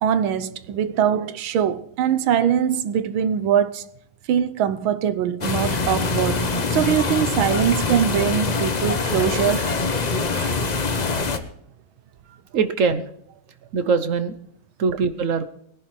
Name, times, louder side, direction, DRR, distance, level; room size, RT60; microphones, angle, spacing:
voice 1, 0.0-3.8 4.3-9.7 10.3-10.6, right 9 dB, 85° right, 1.6 m, -22 dB
sound 1, 5.4-11.4, left 3 dB, 60° left, 0.4 m, -24 dB
voice 2, 12.5-13.1 13.7-14.3 14.8-15.5, right 5 dB, 55° right, 0.9 m, -22 dB
19.5 x 11.0 x 3.2 m
omnidirectional pair, 2.2 m